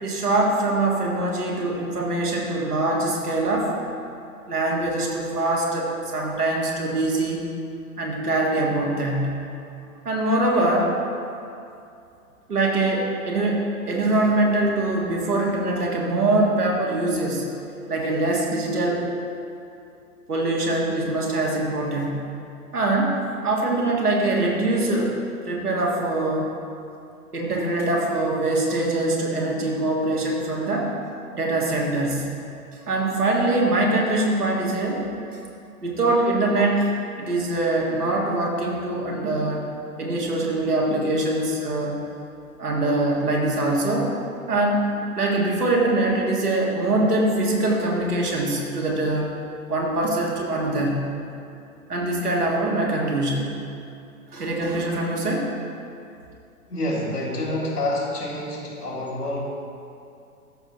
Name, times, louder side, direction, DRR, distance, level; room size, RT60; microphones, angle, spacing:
voice 1, 0.0-3.7 4.5-7.4 8.0-9.4 10.1-11.0 12.5-17.5 17.9-19.0 20.3-22.2 22.7-23.2 23.4-25.2 25.5-26.5 27.3-30.9 31.3-32.3 32.9-35.1 35.3-35.4 35.8-36.9 37.2-39.7 40.0-42.0 42.6-44.1 44.5-49.3 49.7-51.0 51.9-53.6 54.3-55.5, right 2 dB, 80° right, -2 dB, 1.7 m, -23 dB
voice 2, 56.7-59.4, left 1 dB, 85° left, -5 dB, 2.0 m, -27 dB
13.0 x 6.1 x 2.9 m, 2.6 s
figure-of-eight pair, 105°, 45 cm